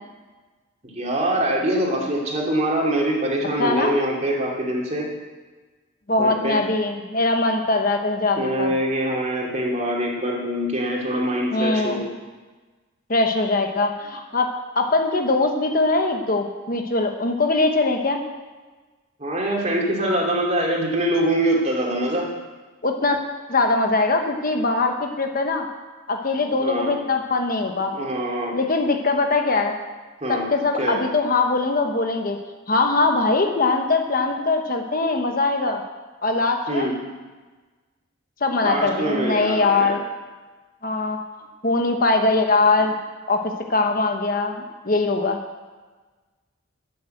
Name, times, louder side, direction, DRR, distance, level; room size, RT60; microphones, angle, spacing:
voice 1, 0.8-5.0 6.2-6.6 8.4-12.0 19.2-22.3 26.6-26.9 27.9-28.6 30.2-30.5 30.8-31.0 36.7-36.9 38.6-40.0, right 1 dB, 30° right, -2 dB, 2.8 m, -24 dB
voice 2, 3.6-3.9 6.1-8.7 11.5-12.0 13.1-18.2 22.8-23.2 23.5-25.7 26.1-27.9 28.5-29.8 30.3-32.4 32.7-35.8 36.2-36.9 38.4-40.0 40.8-41.2 41.6-42.9 43.3-45.4, left 3 dB, 40° left, 4 dB, 1.1 m, -21 dB
12.5 x 9.7 x 7.8 m, 1.3 s
head